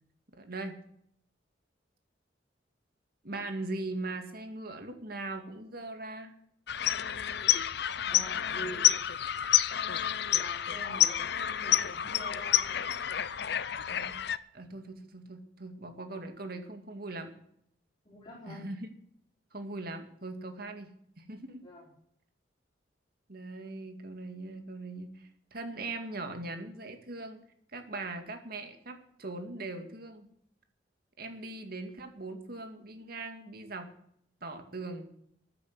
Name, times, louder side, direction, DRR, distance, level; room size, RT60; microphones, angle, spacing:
voice 1, 0.4-0.7 3.2-6.3 13.8-14.2 14.5-17.3 18.5-18.9 19.5-21.6 23.3-27.4 27.7-30.3 31.2-33.9 34.4-35.1, right 2 dB, 55° right, 6 dB, 2.2 m, -40 dB
sound 1, 6.7-14.4, left 10 dB, 65° left, 0.7 m, -29 dB
voice 2, 8.1-8.9 10.3-12.7 18.1-18.7 21.6-21.9, right 1 dB, 25° left, -5 dB, 4.1 m, -46 dB
14.0 x 9.5 x 7.9 m, 0.70 s
head